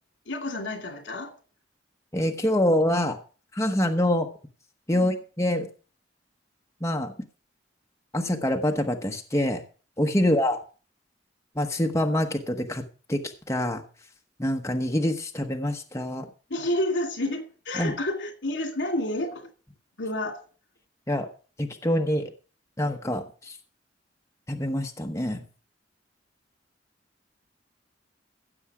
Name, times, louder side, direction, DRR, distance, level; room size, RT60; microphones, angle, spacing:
voice 1, 0.3-1.3 4.9-5.2 10.2-10.3 16.5-19.5 20.0-20.4, left 1 dB, 75° left, 6 dB, 2.6 m, -30 dB
voice 2, 2.1-3.2 3.5-4.3 4.9-5.7 6.8-7.1 8.1-9.6 10.0-10.6 11.5-12.8 13.1-13.2 13.5-13.8 14.4-16.3 17.8-17.9 21.1-21.3 21.6-22.3 22.8-23.6 24.5-25.4, left 1 dB, 15° left, 4 dB, 1.0 m, -25 dB
16.0 x 7.2 x 4.9 m, 0.38 s
head